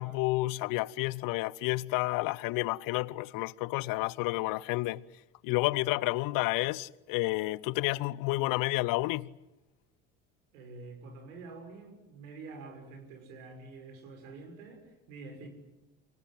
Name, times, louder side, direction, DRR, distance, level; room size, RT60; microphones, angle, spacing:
voice 1, 0.0-5.0 5.4-9.3, left 20 dB, 50° left, 0.9 m, -30 dB
voice 2, 10.5-15.5, right 3 dB, 65° right, 6.2 m, -47 dB
29.5 x 25.5 x 7.7 m
figure-of-eight pair, 65°, 43 cm